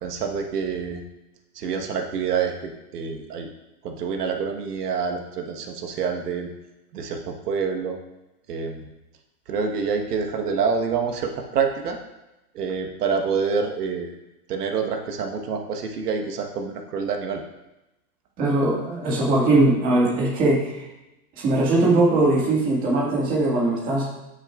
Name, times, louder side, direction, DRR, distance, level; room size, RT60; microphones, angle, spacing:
voice 1, 0.0-1.0 1.5-3.5 3.8-6.5 6.9-8.0 8.5-8.9 9.5-12.0 12.5-14.1 14.5-17.4, right 5 dB, 85° right, 3 dB, 1.3 m, -27 dB
voice 2, 18.4-20.8 21.4-24.1, right 2 dB, 20° right, -4 dB, 1.8 m, -20 dB
12.5 x 6.5 x 2.4 m, 0.96 s
supercardioid pair, 170°, 45 cm